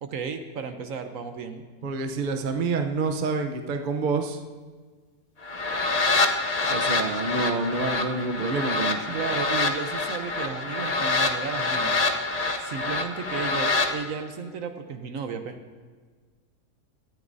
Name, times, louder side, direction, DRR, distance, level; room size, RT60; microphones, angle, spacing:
voice 1, 0.0-1.6 9.1-11.9 12.6-15.6, right 5 dB, 65° right, 7 dB, 1.2 m, -34 dB
voice 2, 1.8-4.4 6.7-9.2, right 4 dB, 40° right, 5 dB, 0.8 m, -27 dB
sound 1, 5.4-13.9, left 3 dB, 35° left, 0.7 m, -26 dB
18.0 x 13.0 x 2.7 m, 1.5 s
omnidirectional pair, 1.6 m